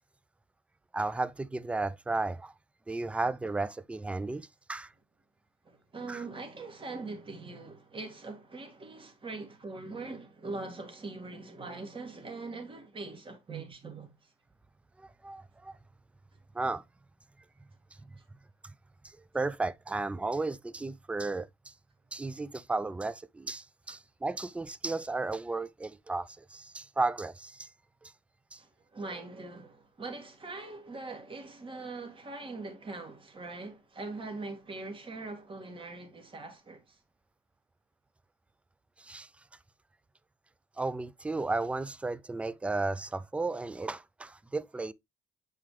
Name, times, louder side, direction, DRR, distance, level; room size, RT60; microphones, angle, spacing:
voice 1, 0.9-2.5 2.9-4.9 6.1-6.2 15.0-15.7 16.5-16.8 19.0-21.7 22.1-27.7 28.0-28.1 28.5-28.6 39.0-39.3 40.8-44.9, right 3 dB, 5° right, 0.4 m, -34 dB
voice 2, 5.6-14.3 28.6-37.0, right 3 dB, 30° right, 2.2 m, -42 dB
7.3 x 4.8 x 3.0 m
cardioid pair, 110°, 17 cm